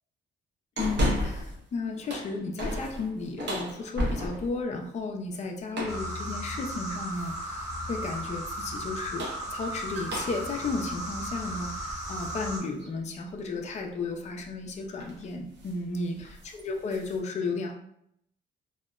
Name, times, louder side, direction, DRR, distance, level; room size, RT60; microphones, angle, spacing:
voice 1, 0.8-16.3 16.5-17.7, left 3 dB, 35° left, 2 dB, 0.4 m, -34 dB
sound 1, 0.8-1.6 1.9-4.6 5.7-6.1 7.2-7.6 8.9-12.3 12.8-12.9 14.4-14.7 15.0-15.2 15.6-15.8 16.1-17.2, equal, 60° right, 0.8 m, -34 dB
sound 2, 5.9-12.6, right 1 dB, 20° right, 1.0 m, -36 dB
2.7 x 2.1 x 2.3 m, 0.74 s
cardioid pair, 90°, 20 cm